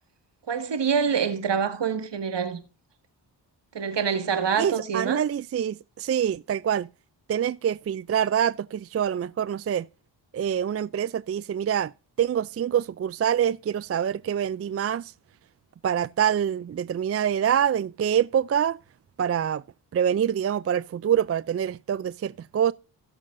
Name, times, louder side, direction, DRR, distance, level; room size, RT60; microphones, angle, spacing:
voice 1, 0.5-2.6 3.7-5.2, right 6 dB, 65° right, 1.9 m, -26 dB
voice 2, 4.6-6.9 7.3-9.9 10.3-11.9 12.2-15.1 15.8-18.8 19.2-19.6 19.9-22.7, right 9 dB, 35° right, 0.4 m, -25 dB
16.5 x 7.2 x 2.6 m
cardioid pair, 45°, 46 cm